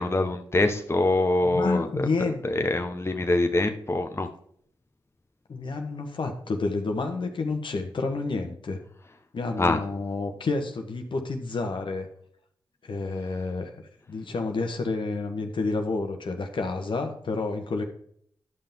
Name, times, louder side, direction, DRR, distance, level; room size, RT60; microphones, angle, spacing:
voice 1, 0.0-4.3 9.6-9.8, left 2 dB, 30° left, 6 dB, 1.0 m, -25 dB
voice 2, 1.4-2.4 5.5-8.8 9.3-12.1 12.8-13.7 14.1-17.8, left 3 dB, 65° left, 5 dB, 1.2 m, -29 dB
11.0 x 5.7 x 3.6 m, 0.65 s
cardioid pair, 45°, 9 cm